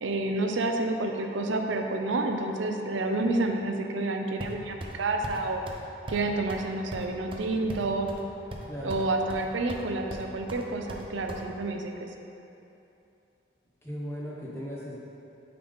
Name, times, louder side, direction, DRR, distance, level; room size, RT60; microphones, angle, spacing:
voice 1, 0.0-5.6 6.1-8.1 8.8-11.9, right 2 dB, 90° right, 4 dB, 0.6 m, -29 dB
sound 1, 4.4-5.0 5.2-5.4 5.7-5.8 6.1-6.2 6.5-6.6 6.9-8.2 8.5-9.0 9.3-9.8 10.1-11.4, right 1 dB, 30° right, 0.5 m, -39 dB
voice 2, 8.7-9.0 13.8-15.0, equal, 15° left, -6 dB, 1.0 m, -37 dB
8.6 x 4.0 x 3.5 m, 2.8 s
head